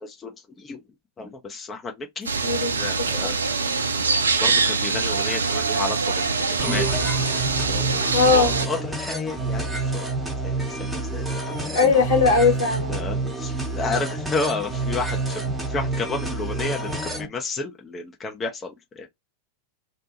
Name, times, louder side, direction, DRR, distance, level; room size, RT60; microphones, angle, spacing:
voice 1, 0.0-0.3 0.6-0.8 1.2-2.4 2.8-3.3 3.9-4.0 4.4-6.9 7.7-8.0 8.3-9.7 9.9-10.1 10.4-11.9 12.9-19.1, left 3 dB, 20° left, 0.6 m, -32 dB
sound 1, 2.3-8.7, right 4 dB, 75° right, 0.3 m, -24 dB
voice 2, 2.4-3.8 8.1-8.5 11.5-12.9, left 4 dB, 60° left, 1.2 m, -21 dB
sound 2, 6.6-17.3, right 2 dB, 5° right, 0.9 m, -28 dB
2.6 x 2.2 x 2.7 m
figure-of-eight pair, 90°, 0 cm